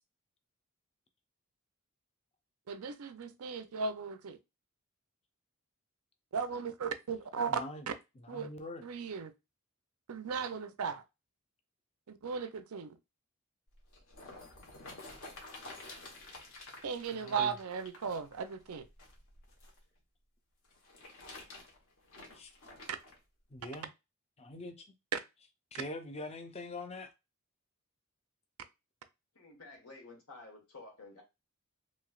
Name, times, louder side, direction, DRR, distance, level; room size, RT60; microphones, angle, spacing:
voice 1, 2.7-4.4 6.3-7.6 8.3-8.5 8.8-9.3 10.1-11.0 12.1-13.0 16.8-18.9 25.1-25.2, right 5 dB, 85° right, 0.5 m, -36 dB
voice 2, 7.5-7.9 8.2-8.9 17.2-17.5 22.3-22.5 23.5-23.9 24.4-24.9 25.7-27.1, left 2 dB, 30° left, 0.5 m, -43 dB
sound 1, 13.7-19.8 20.6-23.2 23.8-23.9, left 2 dB, 65° left, 1.1 m, -51 dB
voice 3, 29.3-31.2, left 3 dB, 85° left, 1.4 m, -52 dB
3.2 x 2.9 x 2.3 m
head